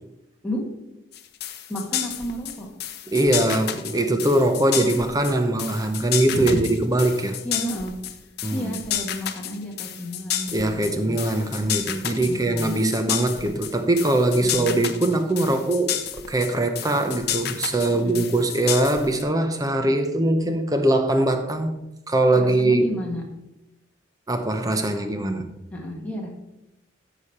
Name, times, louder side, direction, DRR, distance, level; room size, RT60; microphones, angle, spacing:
sound 1, 1.1-19.2, left 11 dB, 55° left, 0.7 m, -31 dB
voice 1, 1.7-2.7 6.3-6.6 7.4-7.9 8.5-11.1 12.2-12.7 14.4-14.9 15.5-15.6 17.9-18.3 22.3-23.2 25.7-26.3, equal, 5° left, -2 dB, 1.6 m, -31 dB
voice 2, 3.1-7.4 8.4-8.8 10.5-21.8 22.1-22.9 24.3-25.5, right 2 dB, 20° right, 7 dB, 0.8 m, -22 dB
13.5 x 5.0 x 4.3 m, 0.91 s
head